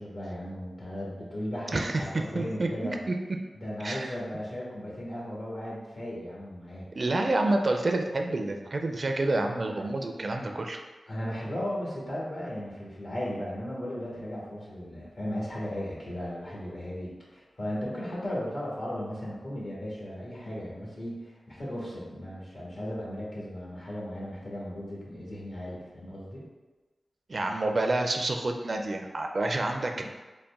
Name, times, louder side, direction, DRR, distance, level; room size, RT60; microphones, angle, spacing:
voice 1, 0.0-3.0 3.5-6.9 9.8-9.9 11.1-26.4, equal, 65° left, -5 dB, 1.5 m, -36 dB
voice 2, 1.7-3.2 3.8-4.1 6.9-10.8 27.3-30.0, right 2 dB, 55° right, 4 dB, 0.4 m, -28 dB
4.0 x 2.2 x 3.5 m, 1.2 s
cardioid pair, 40°, 0 cm